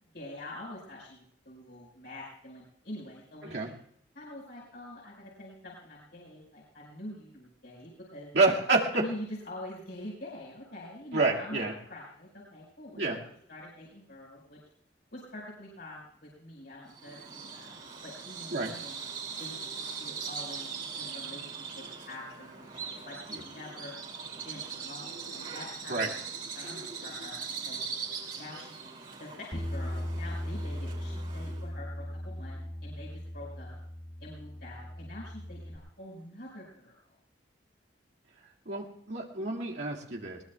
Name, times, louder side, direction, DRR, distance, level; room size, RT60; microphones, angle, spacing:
voice 1, 0.1-3.7 4.1-8.3 8.9-13.2 13.5-14.6 15.1-19.0 19.4-20.7 20.9-23.9 24.4-26.2 26.5-27.8 28.4-28.8 29.2-33.8 34.2-37.0, left 1 dB, 65° left, -4 dB, 4.9 m, -45 dB
voice 2, 8.3-9.0 11.1-11.7 13.0-13.2 18.5-18.7 25.9-26.1 38.7-40.4, right 3 dB, 90° right, -2 dB, 2.0 m, -28 dB
Bird vocalization bird call bird song, 16.9-31.7, right 5 dB, 50° right, 2.5 m, -41 dB
Bass guitar, 29.5-35.8, equal, 30° left, 1.9 m, -38 dB
21.0 x 20.0 x 2.3 m, 0.67 s
head